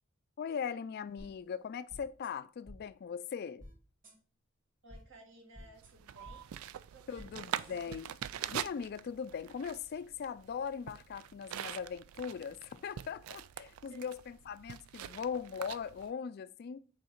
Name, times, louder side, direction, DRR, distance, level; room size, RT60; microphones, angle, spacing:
voice 1, 0.4-3.7 7.1-8.1 8.5-16.8, left 6 dB, 50° left, 0.3 m, -40 dB
sound 1, 1.2-1.3 1.9-2.3 2.6-2.8 3.6-3.7 4.0-4.1 4.9-5.0 5.5-5.9 6.2-6.4 7.1-7.3 7.6-8.5, left 1 dB, 40° right, 2.6 m, -52 dB
voice 2, 4.8-6.5 6.9-7.7 13.9-14.1, right 2 dB, 65° right, 1.8 m, -57 dB
sound 2, 5.8-16.1, right 10 dB, 90° right, 0.3 m, -44 dB
6.3 x 4.0 x 4.3 m
head